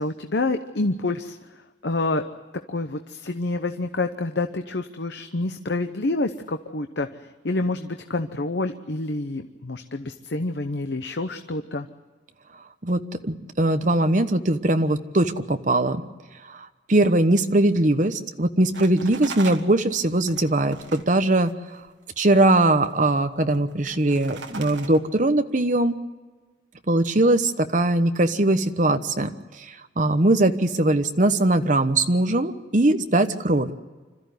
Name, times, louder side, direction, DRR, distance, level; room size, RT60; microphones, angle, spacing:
voice 1, 0.0-1.4 1.8-2.2 2.7-7.1 7.4-11.9, left 2 dB, 70° left, 7 dB, 0.9 m, -27 dB
voice 2, 12.8-16.0 16.9-21.5 22.2-26.0 26.9-29.3 29.7-33.7, right 2 dB, 45° right, 8 dB, 1.1 m, -21 dB
sound 1, 18.7-21.9 22.2-23.1 23.4-25.0, right 4 dB, 80° right, 1.8 m, -39 dB
26.0 x 14.0 x 9.4 m, 1.3 s
head